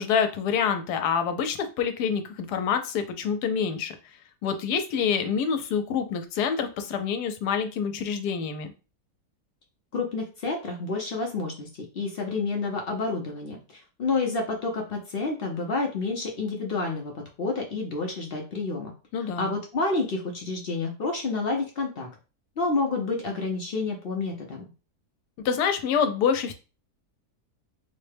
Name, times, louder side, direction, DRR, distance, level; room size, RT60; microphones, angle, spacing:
voice 1, 0.0-3.9 4.4-8.7 19.1-19.5 25.4-26.5, left 7 dB, 85° left, 8 dB, 1.2 m, -26 dB
voice 2, 9.9-11.7 11.9-18.9 19.2-22.1 22.6-24.7, left 3 dB, 60° left, 1 dB, 0.6 m, -29 dB
4.0 x 2.1 x 3.3 m, 0.33 s
omnidirectional pair, 1.7 m